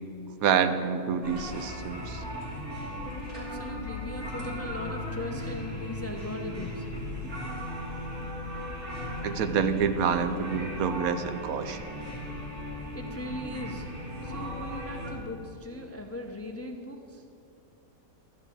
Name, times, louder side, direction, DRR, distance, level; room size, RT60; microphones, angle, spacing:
voice 1, 0.4-2.2 9.2-11.9, right 7 dB, 90° right, 10 dB, 1.2 m, -27 dB
sound 1, 1.2-15.1, left 1 dB, 55° right, 2.9 m, -37 dB
voice 2, 3.3-6.8 12.9-17.2, left 1 dB, 20° left, 4 dB, 0.4 m, -39 dB
12.5 x 5.4 x 8.5 m, 2.9 s
omnidirectional pair, 1.5 m